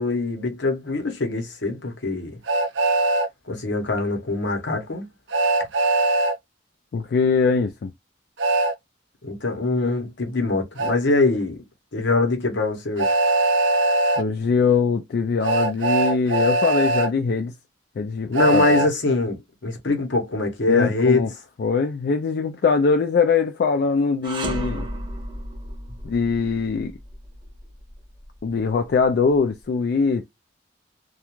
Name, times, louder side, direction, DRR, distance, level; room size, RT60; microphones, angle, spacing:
voice 1, 0.0-2.4 3.5-5.1 9.2-11.6 11.9-13.1 18.3-21.3, left 3 dB, 80° left, 0.9 m, -23 dB
Train, 2.5-3.3 5.3-6.3 8.4-8.7 10.8-10.9 13.0-14.2 15.4-17.1 18.3-18.9, right 2 dB, 80° right, 0.6 m, -20 dB
voice 2, 6.9-7.9 14.2-17.6 18.0-18.7 20.7-21.3 21.6-24.9 26.0-26.9 28.4-30.3, left 5 dB, 55° left, 0.3 m, -22 dB
sound 1, 24.2-29.5, right 1 dB, 25° right, 0.5 m, -34 dB
2.4 x 2.2 x 2.9 m
head